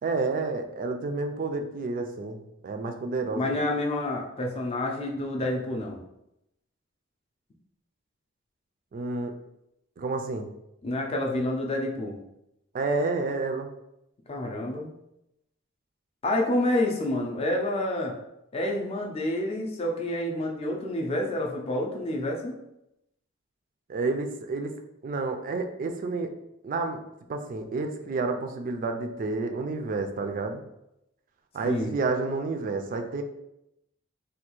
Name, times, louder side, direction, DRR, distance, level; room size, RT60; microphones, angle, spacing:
voice 1, 0.0-3.5 8.9-9.4 10.0-10.5 12.7-13.7 23.9-26.3 26.6-27.0 27.3-30.6 31.5-33.2, right 3 dB, 45° right, 6 dB, 0.3 m, -30 dB
voice 2, 3.3-6.0 10.8-12.1 14.3-14.9 16.2-18.1 18.5-22.6 31.6-31.9, left 1 dB, 30° left, 0 dB, 0.4 m, -28 dB
3.3 x 2.3 x 3.0 m, 0.85 s
head